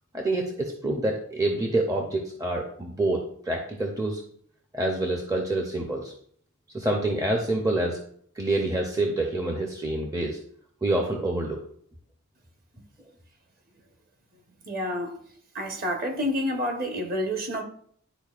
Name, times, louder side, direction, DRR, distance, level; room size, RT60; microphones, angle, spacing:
voice 1, 0.1-4.2 4.7-6.1 6.7-8.0 8.4-10.4 10.8-11.6, right 2 dB, 15° right, 0.6 m, -27 dB
voice 2, 14.7-15.1 15.5-17.6, equal, 40° right, 1.1 m, -28 dB
11.0 x 4.3 x 2.4 m
head